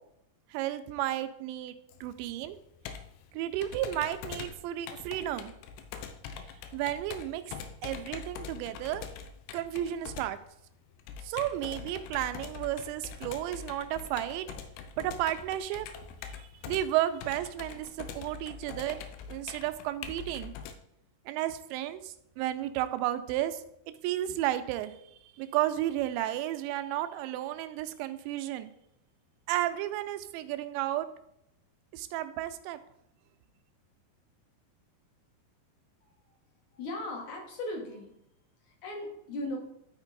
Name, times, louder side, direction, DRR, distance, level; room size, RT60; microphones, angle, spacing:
voice 1, 0.5-1.8 2.0-2.6 3.3-5.5 6.7-7.4 7.8-9.1 9.5-10.4 11.2-14.5 15.0-15.9 16.4-19.0 19.3-20.5 21.3-23.6 24.0-28.7 29.5-31.1 31.9-32.8, right 13 dB, 85° right, 10 dB, 2.9 m, -33 dB
Computer keyboard, 1.9-20.8, left 7 dB, 85° left, 2.8 m, -44 dB
voice 2, 36.7-38.1 38.6-39.6, left 1 dB, 65° left, 1 dB, 1.9 m, -37 dB
12.0 x 4.4 x 4.0 m, 0.77 s
omnidirectional pair, 5.0 m